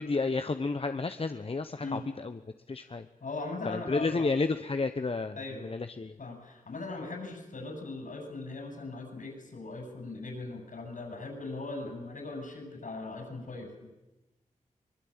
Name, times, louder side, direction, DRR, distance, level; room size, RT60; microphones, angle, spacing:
voice 1, 0.0-2.4 2.7-3.1 3.6-6.1, left 3 dB, 40° left, 9 dB, 1.0 m, -31 dB
voice 2, 3.2-4.3 5.4-5.7 6.2-13.9, left 3 dB, 70° left, 4 dB, 7.8 m, -39 dB
23.5 x 21.0 x 8.9 m, 1.1 s
cardioid pair, 65°, 14 cm